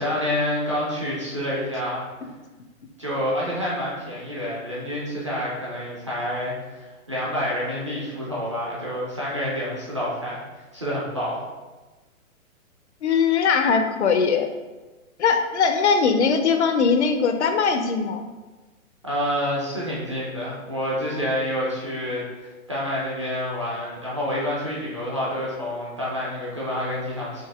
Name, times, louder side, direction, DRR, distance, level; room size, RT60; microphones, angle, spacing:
voice 1, 0.0-2.0 3.0-10.4 10.7-11.4 19.0-27.5, equal, 25° right, -7 dB, 0.4 m, -28 dB
voice 2, 13.0-14.5 15.2-18.2, left 5 dB, 55° left, 6 dB, 0.4 m, -20 dB
4.8 x 2.7 x 3.3 m, 1.2 s
hypercardioid pair, 160°, 43 cm